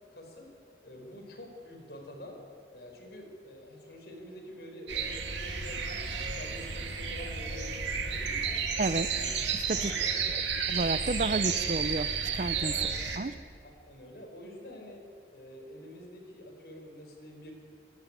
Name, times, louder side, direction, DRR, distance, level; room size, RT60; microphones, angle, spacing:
voice 1, 0.1-0.5 0.8-2.4 2.7-8.6 9.1-9.3 9.7-10.2 12.7-13.0 13.6-15.0 15.3-17.5, left 1 dB, 65° left, 2 dB, 4.6 m, -47 dB
dawnchorus with cuckoo, 4.9-13.2, right 6 dB, 90° right, 2.4 m, -32 dB
voice 2, 10.7-12.7 13.2-13.3, right 2 dB, 45° right, 15 dB, 0.5 m, -31 dB
25.5 x 11.5 x 9.9 m, 2.4 s
head